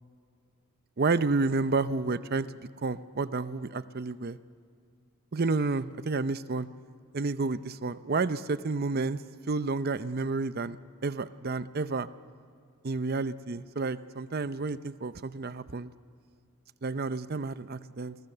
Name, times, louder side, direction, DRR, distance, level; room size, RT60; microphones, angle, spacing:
voice 1, 1.0-2.5 2.8-4.4 5.3-6.7 7.1-9.2 9.5-10.8 11.0-12.1 12.8-15.9 16.8-18.2, right 3 dB, 45° right, 14 dB, 0.6 m, -30 dB
29.5 x 22.0 x 6.7 m, 2.2 s
head